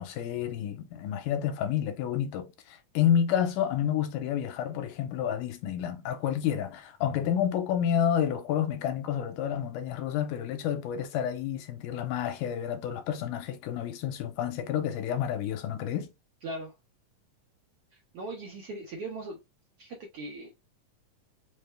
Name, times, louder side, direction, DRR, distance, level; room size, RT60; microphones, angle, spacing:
voice 1, 0.0-16.1, left 9 dB, 90° left, 2.2 m, -29 dB
voice 2, 16.4-16.7 17.9-19.4 19.8-20.5, right 2 dB, 75° right, 1.3 m, -39 dB
5.1 x 2.2 x 3.2 m
omnidirectional pair, 3.7 m